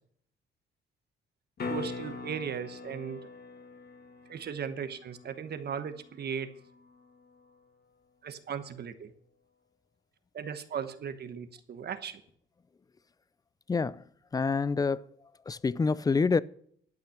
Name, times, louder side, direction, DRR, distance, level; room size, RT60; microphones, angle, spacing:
sound 1, 1.6-7.6 12.3-12.4, left 4 dB, 50° left, 1.9 m, -43 dB
voice 1, 1.7-3.3 4.3-6.5 8.2-9.1 10.3-12.2, right 7 dB, 55° right, 1.2 m, -37 dB
voice 2, 13.7-14.0 14.3-15.0 15.5-16.4, left 4 dB, 20° left, 0.4 m, -27 dB
12.0 x 5.7 x 7.8 m
cardioid pair, 90°, 20 cm